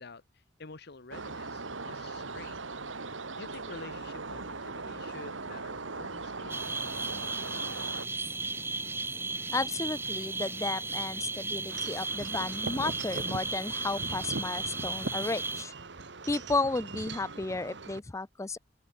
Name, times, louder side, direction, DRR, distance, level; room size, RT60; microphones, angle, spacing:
voice 1, 0.0-2.6 3.0-6.6, left 3 dB, 55° left, 1.1 m, -49 dB
sound 1, 1.1-8.1, right 3 dB, 85° right, 2.3 m, -39 dB
sound 2, 6.5-15.6, right 3 dB, 10° right, 0.8 m, -35 dB
voice 2, 9.5-15.7 16.3-18.6, left 3 dB, 15° left, 0.4 m, -33 dB
Wind chime / Wind, 11.7-18.0, right 3 dB, 65° right, 1.4 m, -41 dB
open air
head